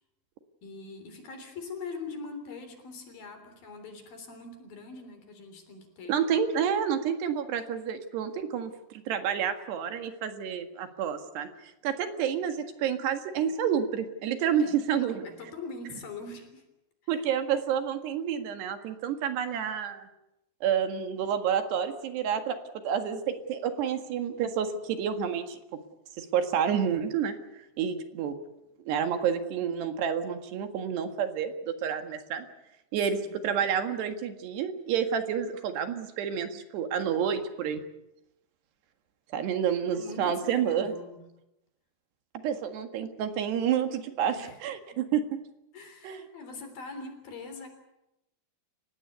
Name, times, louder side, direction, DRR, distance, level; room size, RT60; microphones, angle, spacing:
voice 1, 0.6-6.2 14.6-16.6 17.0-17.3 33.0-33.4 39.9-41.2 44.4-44.6 44.9-45.0 45.7-47.7, left 3 dB, 60° left, 7 dB, 5.1 m, -43 dB
voice 2, 6.1-11.5 11.8-15.2 17.1-20.1 20.6-22.6 22.8-25.6 26.2-27.4 27.8-28.3 28.9-32.5 32.9-33.2 33.4-37.8 39.3-40.9 42.4-45.2 46.0-46.2, right 8 dB, 75° right, 7 dB, 3.9 m, -29 dB
30.0 x 16.5 x 8.2 m, 0.89 s
omnidirectional pair, 4.9 m